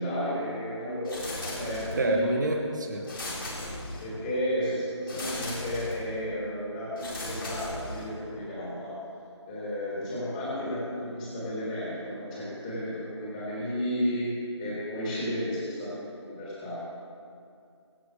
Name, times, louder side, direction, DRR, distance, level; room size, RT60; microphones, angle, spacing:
voice 1, 0.0-2.3 4.0-9.0 9.5-17.1, equal, 15° left, -8 dB, 3.9 m, -33 dB
sound 1, 1.0-2.2 3.0-4.3 5.1-6.1 7.0-8.3, left 1 dB, 50° left, 3.5 m, -37 dB
voice 2, 2.0-3.0, right 2 dB, 40° right, 2 dB, 1.9 m, -27 dB
24.0 x 9.4 x 3.7 m, 2.5 s
figure-of-eight pair, 160°, 15 cm